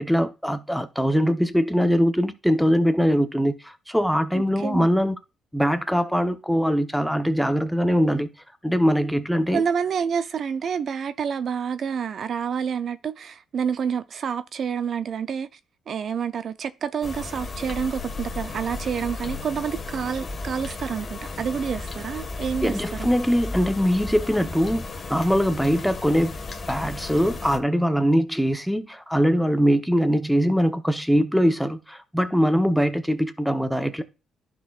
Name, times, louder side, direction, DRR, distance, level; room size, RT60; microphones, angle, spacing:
voice 1, 0.0-5.2 5.5-8.3 8.6-9.6 22.6-24.8 25.1-26.4 26.7-34.0, equal, ahead, 0.9 m, -22 dB
voice 2, 4.3-4.9 9.5-15.5 15.9-23.1, right 7 dB, 55° right, 0.5 m, -28 dB
sound 1, 17.0-27.6, left 3 dB, 35° left, 1.5 m, -34 dB
11.0 x 6.1 x 2.4 m
cardioid pair, 90°, 0 cm